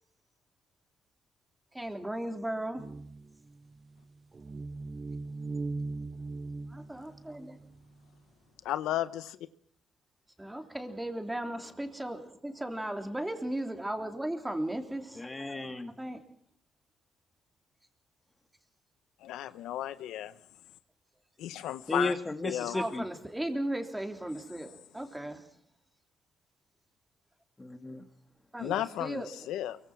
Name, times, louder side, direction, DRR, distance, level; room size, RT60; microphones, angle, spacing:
voice 1, 1.7-2.9 6.7-7.6 10.4-15.2 16.0-16.2 22.7-25.4 28.5-29.3, right 1 dB, 10° right, 3.5 m, -36 dB
sound 1, 2.8-8.0, right 3 dB, 30° right, 1.2 m, -39 dB
voice 2, 8.6-9.4 19.2-20.3 21.4-22.1 22.4-22.8 28.6-29.8, left 12 dB, 90° left, 0.9 m, -34 dB
voice 3, 15.1-15.9 21.9-23.0 27.6-28.0, left 2 dB, 20° left, 2.6 m, -34 dB
23.5 x 23.5 x 6.2 m
cardioid pair, 90°, 0 cm